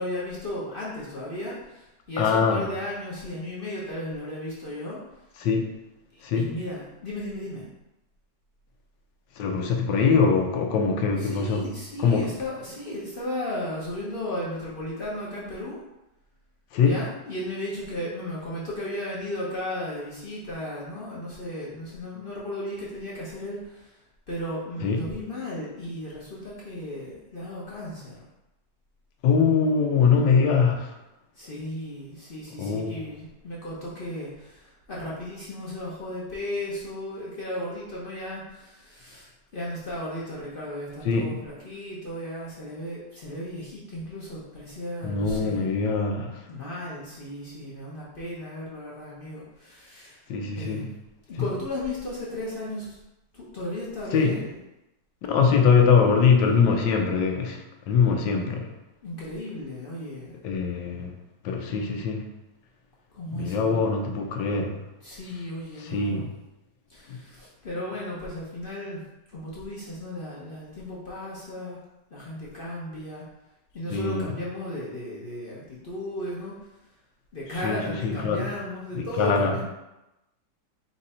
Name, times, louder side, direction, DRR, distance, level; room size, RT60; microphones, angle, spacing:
voice 1, 0.0-5.0 6.1-7.7 11.2-15.8 16.8-24.0 24.3-28.3 31.4-45.7 46.5-50.2 50.6-50.9 51.3-53.0 53.3-54.6 59.0-60.4 63.1-63.9 65.0-66.3 66.9-69.0 69.3-71.8 72.1-73.2 73.7-76.6 77.3-79.6, left 1 dB, 45° left, -6 dB, 0.7 m, -35 dB
voice 2, 2.2-2.6 5.4-5.7 6.2-6.5 9.4-11.6 12.0-12.3 16.7-17.0 24.8-25.0 29.2-30.9 32.6-33.0 41.0-41.4 45.0-46.3 50.3-50.9 54.1-54.4 55.3-58.7 60.4-61.2 61.4-62.3 63.3-64.8 65.8-66.3 67.1-67.2 73.9-74.3 77.6-77.8 78.0-78.5 78.9-79.6, left 5 dB, 80° left, 3 dB, 1.3 m, -22 dB
4.4 x 2.6 x 4.2 m, 0.96 s
omnidirectional pair, 1.9 m